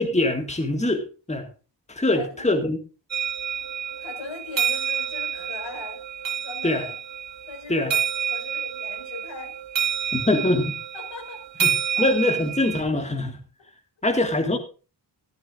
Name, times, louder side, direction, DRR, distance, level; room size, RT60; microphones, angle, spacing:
voice 1, 0.0-1.5 1.9-2.8 6.6-6.9 7.7-7.9 10.1-10.8 11.6-13.4 14.0-14.6, left 2 dB, 15° left, 4 dB, 1.9 m, -23 dB
voice 2, 2.1-2.7 4.0-6.0 6.4-6.9 7.5-9.5 10.9-11.7 12.0-12.1, left 3 dB, 90° left, 2 dB, 5.4 m, -39 dB
sound 1, 3.1-12.8, right 8 dB, 85° right, 2.0 m, -28 dB
14.5 x 13.5 x 2.5 m, 0.32 s
wide cardioid pair, 120°, 43 cm